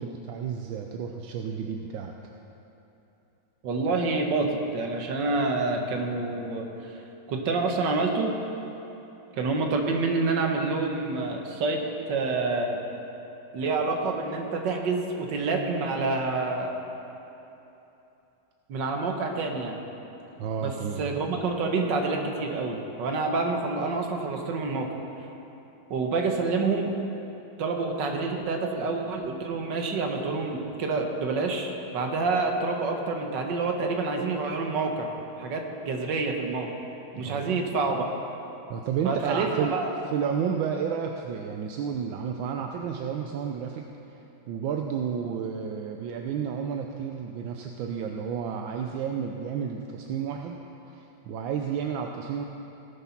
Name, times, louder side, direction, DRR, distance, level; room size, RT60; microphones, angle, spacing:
voice 1, 0.0-2.1 20.4-21.1 37.1-37.5 38.7-39.8 40.1-43.8 44.5-50.6 50.9-52.4, right 7 dB, 80° right, 3 dB, 1.4 m, -31 dB
voice 2, 3.6-7.0 7.3-8.3 9.3-11.8 12.1-12.8 13.5-16.7 18.7-19.8 20.6-20.7 21.0-24.9 25.9-26.9 27.6-35.1 35.4-36.7 37.2-38.1 39.0-39.9, right 3 dB, 65° right, 2 dB, 1.8 m, -27 dB
18.0 x 7.2 x 5.9 m, 3.0 s
omnidirectional pair, 2.1 m